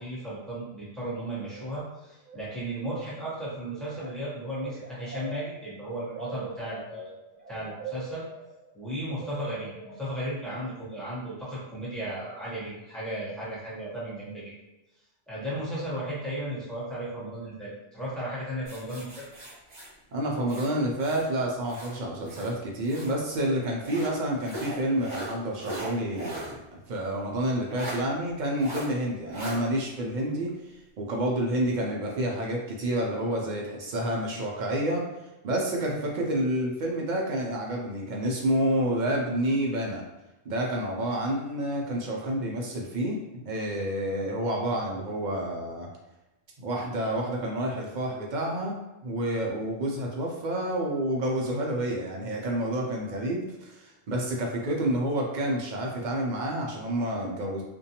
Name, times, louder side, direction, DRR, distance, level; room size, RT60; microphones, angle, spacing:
voice 1, 0.0-7.2 7.5-8.2 8.7-14.5 15.3-19.2, right 1 dB, ahead, -9 dB, 0.8 m, -35 dB
sound 1, 1.6-2.0 2.2-2.7 3.0-10.6, right 4 dB, 85° right, 1.0 m, -44 dB
sound 2, 18.7-21.3 21.6-23.2 23.8-26.6 26.9-27.0 27.7-28.0 28.6-28.9 29.3-29.6, right 1 dB, 30° right, 0.8 m, -39 dB
voice 2, 20.1-30.5 31.0-35.0 35.4-40.0 40.5-45.9 46.6-57.6, right 1 dB, 60° right, -1 dB, 0.5 m, -29 dB
2.5 x 2.2 x 2.8 m, 1.0 s
omnidirectional pair, 1.2 m